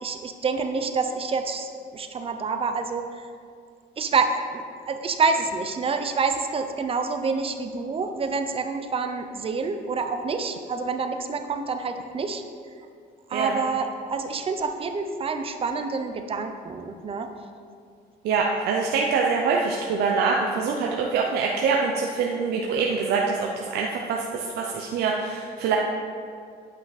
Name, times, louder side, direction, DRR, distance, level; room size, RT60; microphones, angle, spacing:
voice 1, 0.0-3.3 4.0-12.4 13.3-17.3, right 4 dB, 35° right, 6 dB, 0.7 m, -27 dB
voice 2, 18.2-25.8, right 5 dB, 75° right, 0 dB, 0.7 m, -24 dB
8.9 x 5.6 x 4.2 m, 2.3 s
cardioid pair, 110°, 17 cm